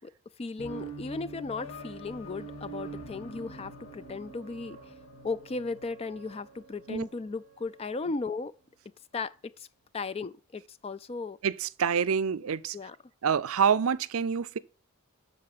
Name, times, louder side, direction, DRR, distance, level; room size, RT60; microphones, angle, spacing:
voice 1, 0.4-4.8 5.2-8.5 9.1-9.7 9.9-11.4 12.7-13.0, left 3 dB, 25° left, 0.4 m, -36 dB
sound 1, 0.6-7.9, right 2 dB, 65° left, 2.7 m, -45 dB
voice 2, 11.4-12.8 13.2-14.6, right 7 dB, 75° right, 0.5 m, -27 dB
12.5 x 4.1 x 6.8 m
head